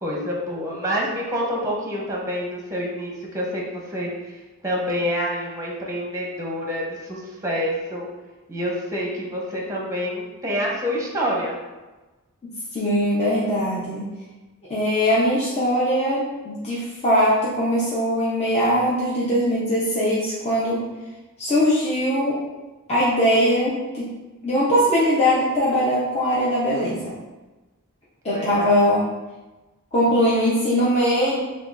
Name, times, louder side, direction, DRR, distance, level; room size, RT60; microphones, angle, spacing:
voice 1, 0.0-4.4 4.6-8.1 8.5-11.6 28.3-28.8, equal, 15° right, -2 dB, 0.7 m, -27 dB
voice 2, 12.7-14.1 14.7-20.8 21.4-22.4 22.9-24.1 24.4-27.2 28.2-29.1 29.9-31.4, equal, 30° left, -8 dB, 0.7 m, -21 dB
6.4 x 2.3 x 2.5 m, 1.2 s
head